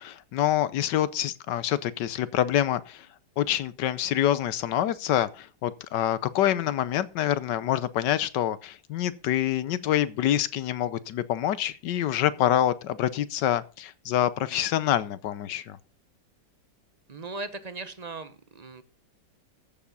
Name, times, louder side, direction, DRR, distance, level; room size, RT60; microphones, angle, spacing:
voice 1, 0.0-3.1 3.4-15.8, left 11 dB, 75° left, 1.4 m, -26 dB
voice 2, 17.1-18.8, right 3 dB, 30° right, 0.8 m, -38 dB
14.0 x 7.1 x 5.4 m
omnidirectional pair, 1.9 m